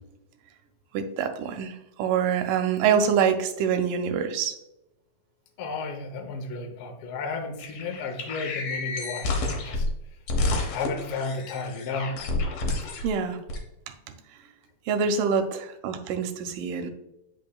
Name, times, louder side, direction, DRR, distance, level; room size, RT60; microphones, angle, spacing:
voice 1, 0.9-4.6 13.0-13.4 14.1-14.2 14.9-16.9, right 7 dB, 80° right, 7 dB, 2.2 m, -25 dB
voice 2, 5.6-9.9 10.7-12.2, left 3 dB, 85° left, 3 dB, 1.2 m, -33 dB
sound 1, 7.6-9.9 10.3-13.1 13.5-13.6, left 2 dB, 65° left, 1.8 m, -29 dB
8.5 x 5.3 x 2.3 m, 0.87 s
omnidirectional pair, 3.9 m